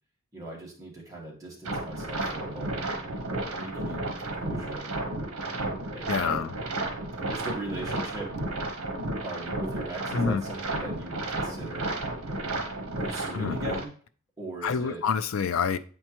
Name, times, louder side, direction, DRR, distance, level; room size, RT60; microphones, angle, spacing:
voice 1, 0.3-3.2 3.5-5.0 5.9-6.4 7.3-8.3 9.2-12.0 13.0-13.9 14.4-15.0, right 1 dB, 15° right, -3 dB, 1.7 m, -39 dB
sound 1, 1.6-13.8, right 2 dB, 75° right, 1.0 m, -32 dB
voice 2, 6.1-6.5 10.1-10.4 13.3-13.6 14.6-15.8, left 6 dB, 65° left, 12 dB, 0.4 m, -27 dB
7.8 x 4.4 x 2.9 m, 0.44 s
head